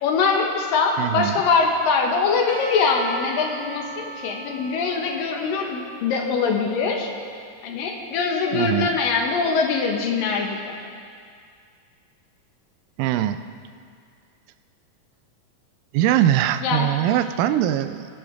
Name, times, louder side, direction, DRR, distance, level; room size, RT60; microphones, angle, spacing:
voice 1, 0.0-7.1 7.6-10.7 16.6-16.9, left 4 dB, 80° left, 2 dB, 3.0 m, -23 dB
voice 2, 1.0-1.4 8.5-8.9 13.0-13.4 15.9-18.1, right 11 dB, 85° right, 11 dB, 2.2 m, -21 dB
Percussion / Church bell, 2.5-7.5, right 2 dB, 40° right, 4.6 m, -39 dB
21.5 x 11.5 x 3.5 m, 2.2 s
omnidirectional pair, 4.0 m